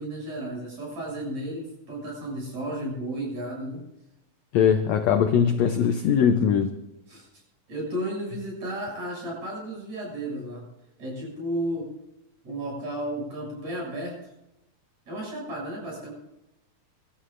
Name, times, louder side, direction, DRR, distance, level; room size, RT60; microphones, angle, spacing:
voice 1, 0.0-3.8 7.1-7.3 7.7-10.6 11.0-11.9 12.4-14.2 15.1-16.1, right 1 dB, 50° right, 8.3 m, -33 dB
voice 2, 4.5-6.7, left 7 dB, 80° left, 1.5 m, -21 dB
27.0 x 13.0 x 2.6 m
omnidirectional pair, 4.2 m